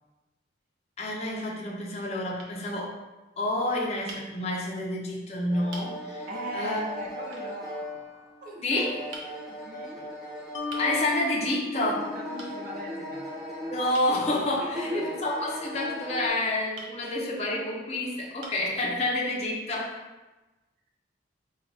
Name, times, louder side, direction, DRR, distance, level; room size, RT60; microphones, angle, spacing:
sound 1, 0.6-1.2 1.9-2.1 2.4-2.6 4.1-4.3 5.1-5.2 5.7-5.9 7.3-7.5 9.1-9.3 10.7-10.9 12.4-12.6 13.9-14.1 16.7-16.9 17.8-17.9 18.4-18.7, right 2 dB, 85° right, 0.8 m, -43 dB
voice 1, 1.0-3.0 3.4-6.3 6.5-6.8 8.6-8.9 10.8-12.1 13.7-20.0, left 1 dB, 35° left, -3 dB, 0.7 m, -29 dB
sound 2, 5.5-11.4 11.7-14.4 14.7-16.3, left 1 dB, ahead, 1.1 m, -39 dB
voice 2, 6.3-8.8 9.5-10.2 12.1-13.3 14.6-15.2, equal, 45° right, -1 dB, 0.7 m, -38 dB
Mallet percussion, 10.5-13.8, left 5 dB, 75° left, 0.5 m, -38 dB
3.8 x 2.4 x 4.7 m, 1.1 s
head